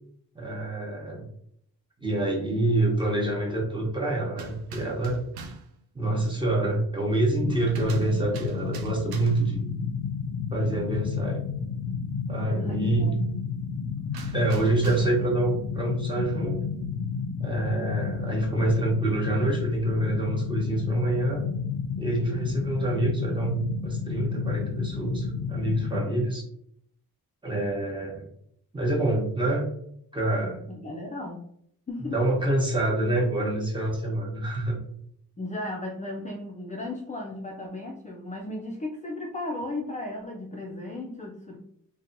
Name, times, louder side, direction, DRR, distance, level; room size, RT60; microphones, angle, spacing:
voice 1, 0.3-1.3 2.0-5.2 5.9-9.6 10.5-11.4 12.3-13.1 14.3-16.8 17.4-21.4 22.0-26.4 27.4-28.3 28.7-29.6 30.1-30.6 32.0-34.8, right 2 dB, 15° right, -2 dB, 0.9 m, -26 dB
sound 1, 4.3-5.7 7.5-9.6 14.1-15.3, right 4 dB, 90° right, 0.5 m, -43 dB
sound 2, 7.4-26.0, left 6 dB, 80° left, 0.5 m, -31 dB
voice 2, 12.6-13.3 30.7-31.5 31.9-32.2 35.4-41.6, left 2 dB, 20° left, 0 dB, 0.4 m, -35 dB
2.8 x 2.2 x 2.5 m, 0.70 s
cardioid pair, 95°, 36 cm